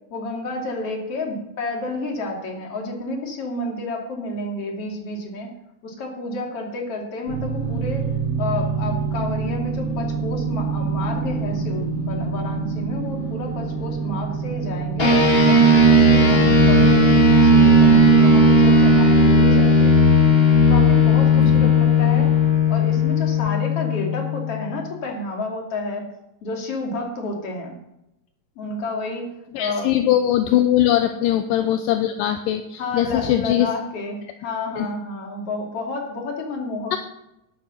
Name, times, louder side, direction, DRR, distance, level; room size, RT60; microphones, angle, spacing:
voice 1, 0.1-5.5 5.8-8.1 8.4-15.2 15.5-20.1 20.7-22.3 22.7-26.1 26.4-27.7 28.6-30.2 32.8-37.0, left 2 dB, 45° left, 0 dB, 3.2 m, -30 dB
sound 1, 7.3-19.1, right 5 dB, 25° right, 2.8 m, -26 dB
sound 2, 15.0-24.7, left 1 dB, 25° left, 1.5 m, -15 dB
voice 2, 21.4-21.7 29.5-33.7 34.8-34.9 36.9-37.0, left 12 dB, 80° left, 7 dB, 2.2 m, -21 dB
11.5 x 9.8 x 5.8 m, 0.86 s
omnidirectional pair, 4.2 m